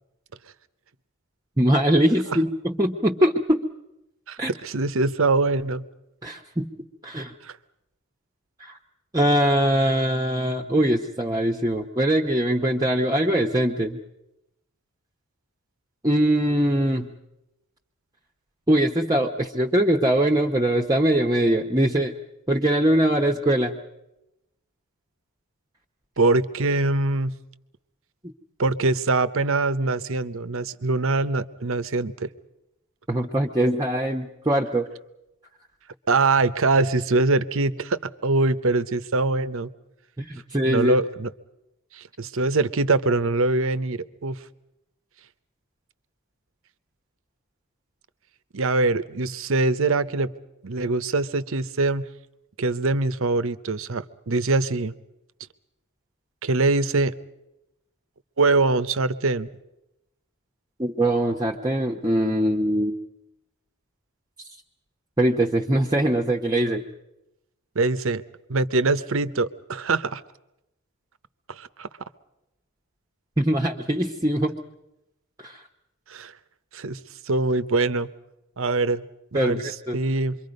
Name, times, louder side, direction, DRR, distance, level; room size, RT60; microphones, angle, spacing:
voice 1, 1.6-3.6 4.4-4.5 6.2-6.7 7.0-7.3 8.6-8.8 9.1-14.0 16.0-17.1 18.7-22.2 22.5-23.8 33.1-34.9 40.2-40.9 60.8-63.0 65.2-66.8 73.4-74.5 75.4-75.6 79.3-79.6 79.9-80.0, right 1 dB, 15° right, 1 dB, 0.9 m, -22 dB
voice 2, 4.3-5.8 7.4-7.6 26.2-27.3 28.6-32.3 36.1-39.7 40.6-41.3 41.9-44.4 48.5-50.3 50.6-52.0 52.6-54.9 56.4-57.1 58.4-59.5 67.7-68.2 68.5-70.2 71.5-71.9 76.1-76.3 76.7-77.0 77.2-78.1 78.6-79.1 79.3-80.4, right 3 dB, 65° right, 14 dB, 0.8 m, -23 dB
26.5 x 23.5 x 5.3 m, 0.89 s
head